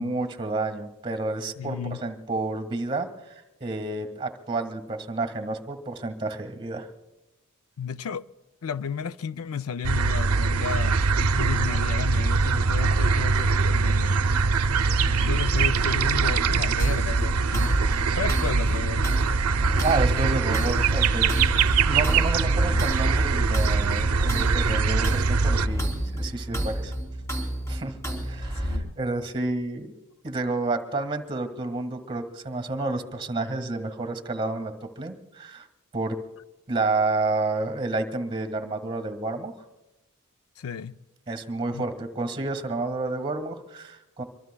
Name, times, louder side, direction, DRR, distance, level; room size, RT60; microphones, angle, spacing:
voice 1, 0.0-3.1 3.6-6.9 19.8-21.3 21.8-26.9 27.7-28.0 28.3-29.9 30.2-35.6 35.9-36.2 36.7-39.5 41.3-44.2, right 2 dB, 25° right, 1.7 m, -30 dB
voice 2, 1.6-2.0 7.8-8.3 8.6-14.2 15.2-17.7 18.1-19.1 28.6-29.0 40.6-41.0 41.7-41.8, left 7 dB, 75° left, 0.5 m, -33 dB
sound 1, 9.8-25.7, right 4 dB, 85° right, 0.6 m, -23 dB
sound 2, 16.8-28.8, right 1 dB, 15° left, 3.1 m, -31 dB
25.0 x 23.5 x 2.3 m
head